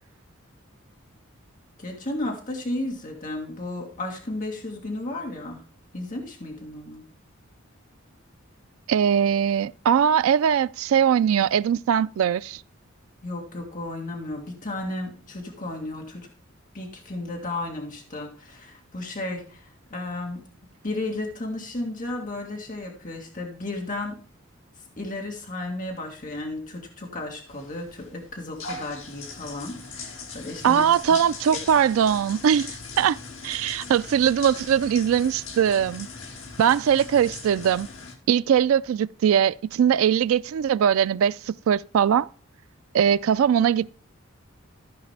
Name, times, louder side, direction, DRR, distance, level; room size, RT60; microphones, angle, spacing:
voice 1, 1.8-5.6 5.9-7.0 13.2-16.3 16.7-19.6 19.9-20.4 20.8-24.2 25.0-31.2, left 2 dB, 40° left, 1.9 m, -33 dB
voice 2, 8.9-12.6 30.6-33.2 33.4-36.1 36.6-37.9 38.3-42.3 42.9-44.0, right 8 dB, 80° right, 0.3 m, -21 dB
sound 1, 27.5-38.1, left 4 dB, 70° left, 1.7 m, -40 dB
14.5 x 5.1 x 3.3 m
head